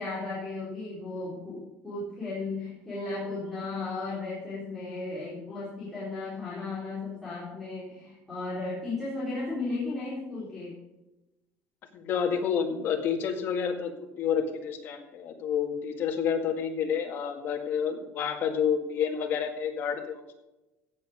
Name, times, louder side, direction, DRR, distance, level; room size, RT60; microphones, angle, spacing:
voice 1, 0.0-10.8, left 3 dB, 5° left, -11 dB, 4.2 m, -35 dB
voice 2, 11.9-13.9 14.2-20.3, left 7 dB, 45° left, 3 dB, 1.9 m, -29 dB
16.0 x 6.6 x 5.1 m, 0.99 s
cardioid pair, 175°, 5 cm